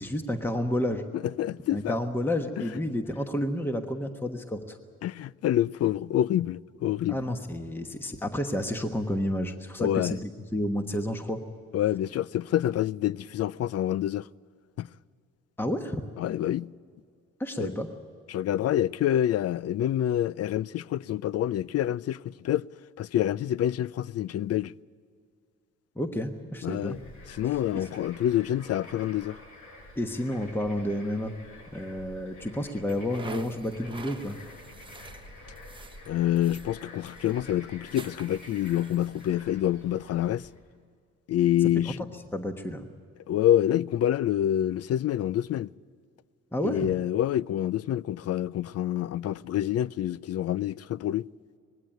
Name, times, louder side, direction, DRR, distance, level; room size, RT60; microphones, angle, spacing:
voice 1, 0.0-1.0 1.7-4.8 7.1-10.2 10.5-11.4 15.6-16.0 17.4-17.9 26.0-27.0 27.7-27.9 30.0-31.3 31.7-34.4 41.9-42.0 42.3-42.9 46.5-46.9, left 1 dB, 5° left, 1.2 m, -30 dB
voice 2, 1.1-2.0 2.6-2.7 5.0-7.2 9.8-10.2 11.7-14.3 14.8-14.9 16.2-16.7 17.6-17.7 18.3-22.7 23.0-24.7 26.6-27.0 27.3-29.4 36.1-40.5 41.3-42.0 43.3-45.7 46.6-51.3, left 12 dB, 55° left, 0.4 m, -27 dB
Bird / Frog, 26.8-40.6, left 2 dB, 80° left, 6.2 m, -49 dB
sound 1, 32.9-39.4, right 3 dB, 15° right, 1.1 m, -48 dB
20.0 x 16.0 x 9.2 m
cardioid pair, 90°, 30 cm